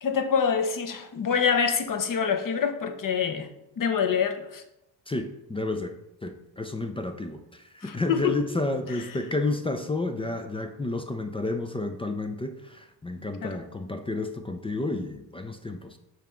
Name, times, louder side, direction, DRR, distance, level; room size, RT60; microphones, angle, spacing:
voice 1, 0.0-3.5 3.8-4.6 7.8-8.5 8.9-9.1 13.4-13.6, left 6 dB, 40° left, 7 dB, 0.9 m, -26 dB
voice 2, 5.1-5.9 6.2-16.0, left 2 dB, 10° left, 6 dB, 0.4 m, -31 dB
5.7 x 3.7 x 4.4 m, 0.88 s
supercardioid pair, 70°, 50 cm